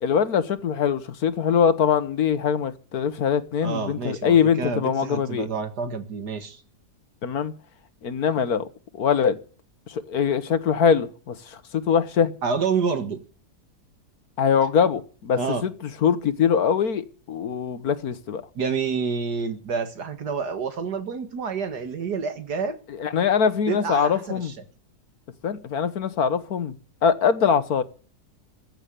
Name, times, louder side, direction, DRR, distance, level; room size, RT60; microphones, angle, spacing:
voice 1, 0.0-5.5 7.2-7.5 8.0-8.7 8.9-9.4 9.9-12.3 14.4-15.7 16.0-18.4 23.0-24.5 25.4-26.7 27.0-27.8, left 7 dB, 65° left, 1.6 m, -22 dB
voice 2, 3.6-6.6 12.4-13.2 15.4-15.6 18.6-22.8 23.7-24.5, right 5 dB, 75° right, 2.2 m, -28 dB
15.0 x 8.9 x 8.3 m
omnidirectional pair, 1.8 m